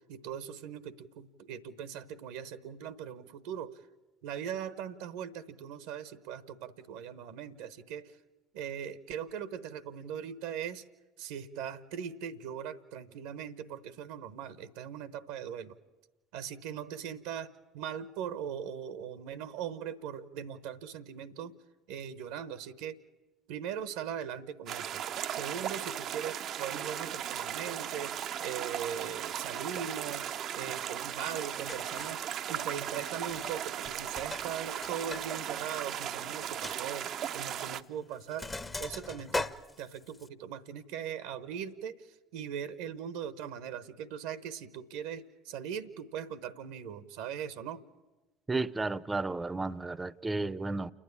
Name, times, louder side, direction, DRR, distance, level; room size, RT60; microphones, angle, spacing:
voice 1, 0.1-3.8 4.2-8.2 8.5-10.8 11.2-15.7 16.3-17.5 17.7-21.5 21.9-23.0 23.5-25.0 25.3-30.3 30.5-32.2 32.5-38.5 38.8-39.5 39.8-47.8, right 8 dB, 65° right, 1.0 m, -40 dB
sound 1, 24.7-37.8, right 10 dB, 50° right, 0.6 m, -37 dB
Sink (filling or washing), 31.3-31.4 31.7-32.2 33.2-33.6 33.8-35.3 35.6-35.7 36.1-36.2 36.6-36.8 37.6-37.8 38.1-40.3, left 2 dB, 15° left, 0.9 m, -39 dB
voice 2, 48.5-50.9, right 3 dB, 15° right, 0.7 m, -33 dB
29.0 x 9.9 x 9.9 m
hypercardioid pair, 65°, 0 cm